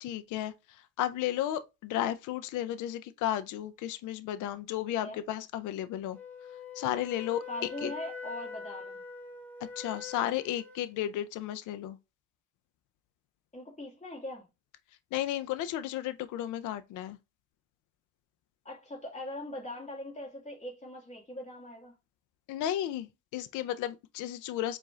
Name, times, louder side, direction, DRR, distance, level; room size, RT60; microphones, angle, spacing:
voice 1, 0.0-6.2 6.7-7.4 7.8-7.9 9.8-12.0 15.1-17.2 22.5-23.1 23.3-24.8, left 12 dB, 80° left, 0.5 m, -33 dB
Wind instrument woodwind instrument, 6.1-10.9, left 5 dB, 5° left, 1.1 m, -44 dB
voice 2, 7.5-9.0 13.5-14.5 18.6-21.9, left 1 dB, 25° left, 1.7 m, -41 dB
4.7 x 2.5 x 3.1 m
cardioid pair, 90°, 30 cm